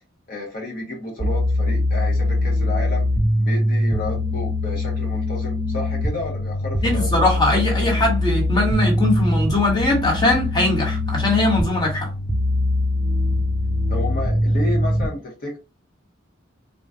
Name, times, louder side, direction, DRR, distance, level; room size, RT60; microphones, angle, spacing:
voice 1, 0.3-3.1 3.4-7.1 13.9-15.6, left 2 dB, 50° left, 0.8 m, -31 dB
sound 1, 1.2-15.1, left 1 dB, 20° right, 0.3 m, -22 dB
voice 2, 6.8-12.1, left 2 dB, 20° left, 1.1 m, -21 dB
3.8 x 2.1 x 2.4 m
head